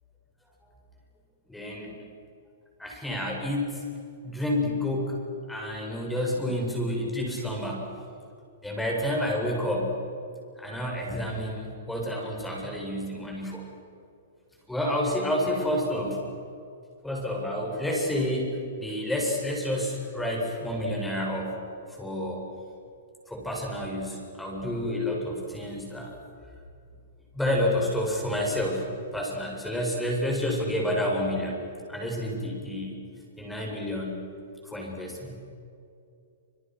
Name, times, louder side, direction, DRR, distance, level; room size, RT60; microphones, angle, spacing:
voice 1, 1.5-1.9 2.8-3.8 4.2-5.2 5.5-7.9 8.6-9.9 10.6-13.6 14.7-16.2 17.0-21.6 22.0-22.4 23.3-26.1 27.3-28.8 29.1-31.6 31.9-32.9 33.4-34.2 34.6-35.4, left 1 dB, 5° left, -1 dB, 7.8 m, -29 dB
29.0 x 28.0 x 6.5 m, 2.5 s
hypercardioid pair, 120°, 0 cm